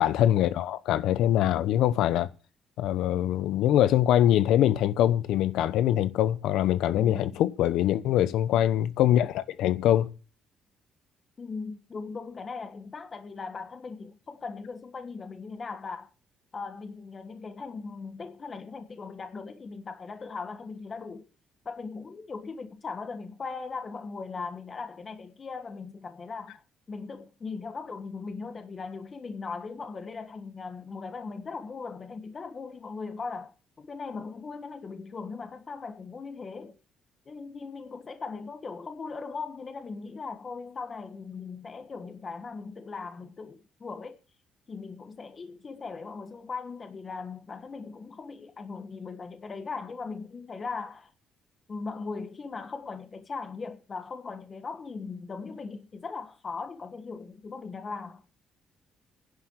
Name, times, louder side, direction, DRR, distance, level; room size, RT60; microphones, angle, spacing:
voice 1, 0.0-2.3 2.8-10.1, left 12 dB, 90° left, 0.9 m, -23 dB
voice 2, 6.9-7.4 11.4-16.1 16.5-21.3 21.6-26.6 26.9-36.8 37.2-44.2 44.7-51.1 51.7-58.2, left 4 dB, 35° left, 1.5 m, -39 dB
11.0 x 7.9 x 8.9 m
cardioid pair, 120°, 0 cm